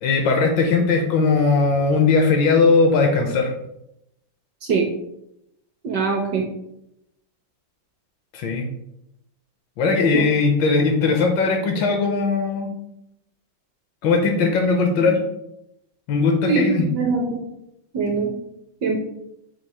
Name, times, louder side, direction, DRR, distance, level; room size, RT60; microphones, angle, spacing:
voice 1, 0.0-3.5 8.3-8.7 9.8-12.7 14.0-15.2 16.1-16.9, left 4 dB, 70° left, 3 dB, 1.2 m, -19 dB
voice 2, 5.8-6.5 10.1-10.2 16.5-16.7 16.9-17.4 17.9-18.3 18.8-19.0, right 4 dB, 70° right, 1 dB, 1.1 m, -22 dB
4.8 x 2.4 x 4.1 m, 0.83 s
omnidirectional pair, 2.3 m